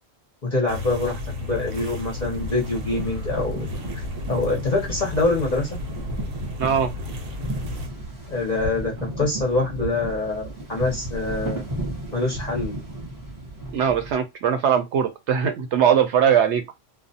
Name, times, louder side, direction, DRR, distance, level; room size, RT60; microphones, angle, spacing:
voice 1, 0.4-1.2 1.5-3.7 3.9-5.8 8.3-11.6 12.1-12.7, left 2 dB, 45° left, 0.6 m, -25 dB
sound 1, 0.7-7.9, left 2 dB, 85° right, 1.1 m, -33 dB
sound 2, 2.3-14.1, right 1 dB, 20° right, 0.7 m, -34 dB
voice 2, 6.6-6.9 13.7-16.7, right 8 dB, 70° right, 0.8 m, -20 dB
2.4 x 2.0 x 2.6 m
omnidirectional pair, 1.3 m